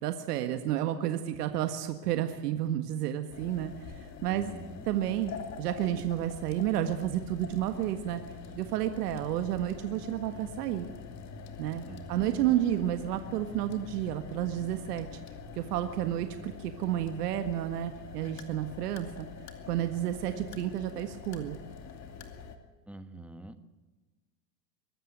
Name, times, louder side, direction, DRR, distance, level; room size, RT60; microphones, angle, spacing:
voice 1, 0.0-3.7 4.0-4.5 4.9-5.3 5.6-8.2 8.5-10.9 11.6-15.1 15.6-19.3 19.7-21.6, right 12 dB, 70° right, 8 dB, 1.8 m, -31 dB
sound 1, 3.3-22.6, left 6 dB, 35° left, 2.6 m, -45 dB
voice 2, 4.3-4.8 11.9-12.5 22.9-23.6, right 1 dB, 5° right, 10 dB, 1.4 m, -46 dB
23.0 x 13.5 x 9.2 m, 1.2 s
hypercardioid pair, 110°, 49 cm